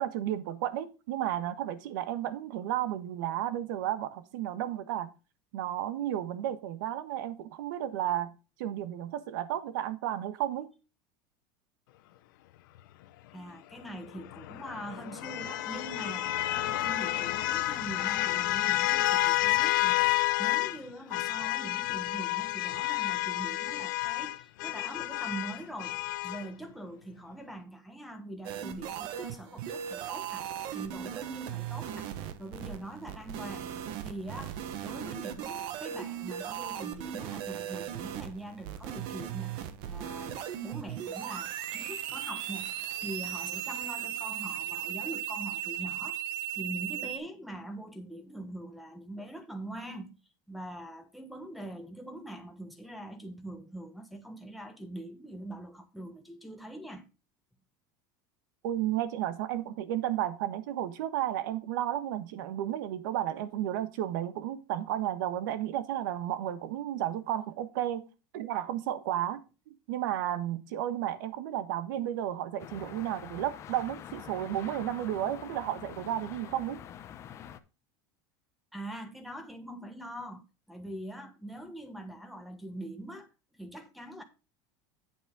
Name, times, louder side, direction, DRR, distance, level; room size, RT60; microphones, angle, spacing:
voice 1, 0.0-5.1 5.5-10.7 58.6-68.1 68.3-69.4 69.7-76.8, right 12 dB, 75° right, 1.3 m, -33 dB
voice 2, 13.3-20.0 20.4-30.4 30.7-32.1 32.4-33.7 34.0-39.6 39.9-46.2 46.6-50.1 50.5-57.1 78.7-83.3 83.5-84.2, right 1 dB, ahead, 1.2 m, -43 dB
sound 1, 14.1-20.8 21.1-26.5, left 17 dB, 80° left, 0.9 m, -30 dB
sound 2, 28.4-47.2, right 11 dB, 50° right, 1.1 m, -37 dB
sound 3, 72.6-77.6, left 10 dB, 25° left, 0.7 m, -46 dB
8.7 x 7.6 x 3.6 m
cardioid pair, 170°, 11 cm